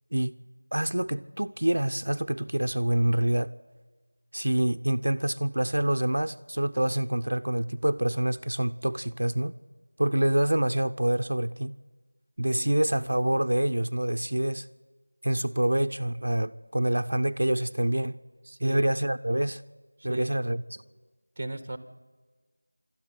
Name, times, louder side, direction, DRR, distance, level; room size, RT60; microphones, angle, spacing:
voice 1, 0.7-3.5 4.3-9.5 10.0-11.8 12.4-14.7 15.2-18.2 18.6-19.6 20.0-20.8, right 1 dB, 65° right, 0.6 m, -26 dB
voice 2, 18.5-18.9 20.0-20.3 21.4-21.8, right 2 dB, 20° right, 1.3 m, -35 dB
26.0 x 13.0 x 9.4 m
figure-of-eight pair, 175°, 0 cm